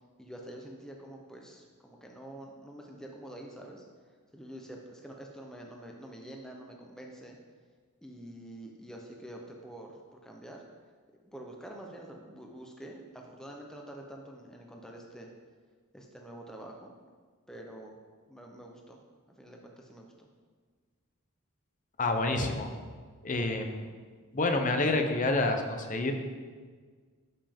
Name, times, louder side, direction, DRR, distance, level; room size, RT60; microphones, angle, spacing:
voice 1, 0.2-3.8 4.3-7.4 8.0-10.6 11.2-15.3 15.9-16.9 17.5-18.0 18.3-19.0 19.3-20.3, right 1 dB, 5° left, 0 dB, 0.7 m, -47 dB
voice 2, 22.0-22.7 23.2-23.9 24.3-26.1, left 2 dB, 35° left, 5 dB, 0.8 m, -28 dB
12.0 x 5.5 x 3.6 m, 1.6 s
head